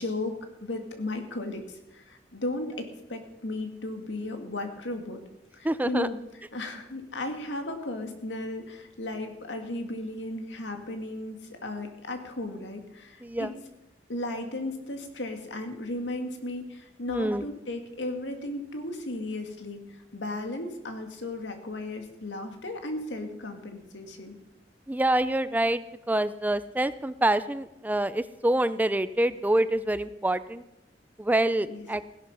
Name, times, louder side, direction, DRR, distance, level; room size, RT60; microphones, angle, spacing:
voice 1, 0.0-5.2 5.6-6.2 6.5-13.5 14.1-24.4 31.7-31.9, left 2 dB, 90° left, 5 dB, 2.2 m, -35 dB
voice 2, 5.6-6.1 13.2-13.5 17.1-17.4 24.9-30.6 31.2-32.0, right 1 dB, 10° right, 15 dB, 0.4 m, -26 dB
17.0 x 11.0 x 5.6 m, 0.92 s
head